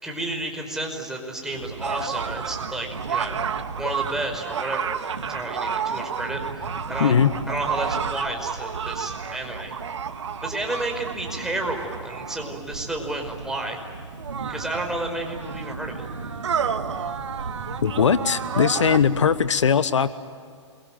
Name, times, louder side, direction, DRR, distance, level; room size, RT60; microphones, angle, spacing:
voice 1, 0.0-3.4 3.8-6.4 6.8-7.1 7.5-9.7 10.4-13.8 14.5-16.1, right 2 dB, 5° right, 1 dB, 5.3 m, -31 dB
sound 1, 1.5-19.5, right 3 dB, 85° right, 2.3 m, -38 dB
sound 2, 1.8-12.6 13.5-13.6 14.2-19.0, right 7 dB, 65° right, 1.8 m, -31 dB
voice 2, 7.0-7.3 17.8-20.1, left 7 dB, 75° left, 14 dB, 1.2 m, -20 dB
28.0 x 23.0 x 9.1 m, 2.2 s
hypercardioid pair, 120°, 16 cm